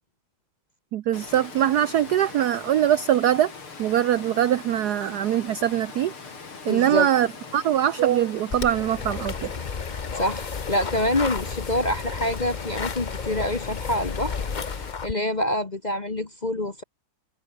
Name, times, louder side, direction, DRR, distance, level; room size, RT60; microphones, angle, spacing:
voice 1, 0.9-3.5 3.8-6.1 6.6-7.3 7.5-9.5, right 11 dB, 70° right, 0.9 m, -22 dB
Water, 1.1-14.9, left 4 dB, 75° left, 4.6 m, -41 dB
voice 2, 6.7-7.1 10.1-14.4 15.0-16.8, left 1 dB, 25° left, 1.0 m, -26 dB
sound 1, 8.5-15.1, left 5 dB, 55° left, 0.5 m, -32 dB
omnidirectional pair, 2.4 m